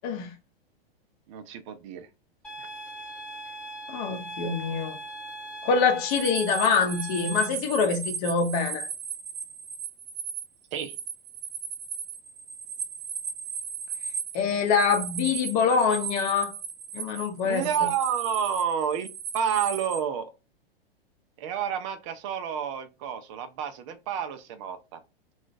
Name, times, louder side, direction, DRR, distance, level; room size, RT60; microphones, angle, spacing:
voice 1, 1.3-2.1 2.6-2.7 10.7-10.9 17.4-19.1 19.3-20.3 21.4-25.0, right 8 dB, 30° right, 0.4 m, -29 dB
sound 1, 2.4-7.5, right 1 dB, 5° left, 0.8 m, -40 dB
voice 2, 3.9-5.0 5.6-8.9 14.3-16.5 16.9-17.7, left 5 dB, 35° left, 0.8 m, -25 dB
sound 2, 6.1-10.4 10.7-20.0, right 6 dB, 90° right, 0.5 m, -36 dB
2.8 x 2.3 x 2.5 m
figure-of-eight pair, 105°, 31 cm